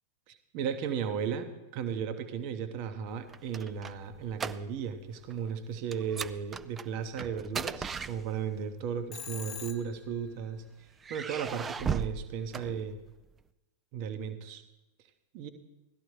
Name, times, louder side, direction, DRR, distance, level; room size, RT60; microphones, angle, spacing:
voice 1, 0.3-10.6 11.1-13.0 13.9-14.6 15.3-15.5, right 7 dB, 45° right, 9 dB, 0.9 m, -35 dB
sound 1, 3.1-5.0 5.3-5.5 5.9-8.7 9.6-10.4 11.0-13.3, right 6 dB, 20° right, 0.3 m, -38 dB
Telephone, 9.1-10.2, left 8 dB, 30° left, 1.0 m, -42 dB
17.0 x 12.5 x 3.2 m, 1.0 s
figure-of-eight pair, 90°, 0 cm